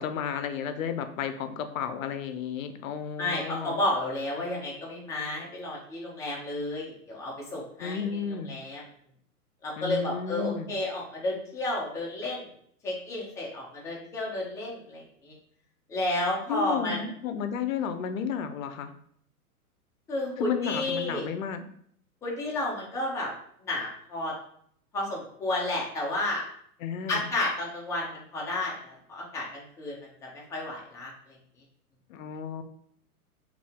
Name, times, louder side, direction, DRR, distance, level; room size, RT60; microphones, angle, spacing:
voice 1, 0.0-3.8 7.8-8.5 9.8-10.7 16.5-18.9 20.4-21.7 26.8-27.2 32.1-32.6, left 7 dB, 60° left, 9 dB, 0.6 m, -32 dB
voice 2, 3.2-8.8 9.6-12.5 12.8-15.3 15.9-17.0 20.1-21.3 22.2-23.3 23.6-24.3 24.9-26.4 27.1-29.9 30.5-31.1, left 1 dB, 5° left, -4 dB, 0.4 m, -32 dB
2.8 x 2.6 x 3.5 m, 0.65 s
hypercardioid pair, 115°, 45 cm